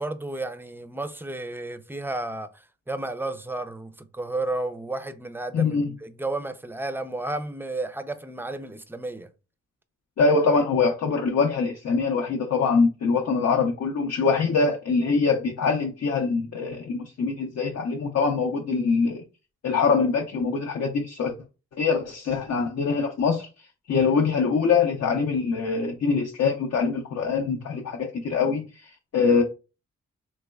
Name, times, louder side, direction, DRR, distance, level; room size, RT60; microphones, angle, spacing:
voice 1, 0.0-9.3, right 2 dB, 5° right, 0.4 m, -32 dB
voice 2, 5.5-5.9 10.2-19.2 19.6-21.4 21.8-23.5 23.9-29.4, left 4 dB, 60° left, 0.6 m, -23 dB
3.3 x 3.0 x 2.2 m
cardioid pair, 60°, 30 cm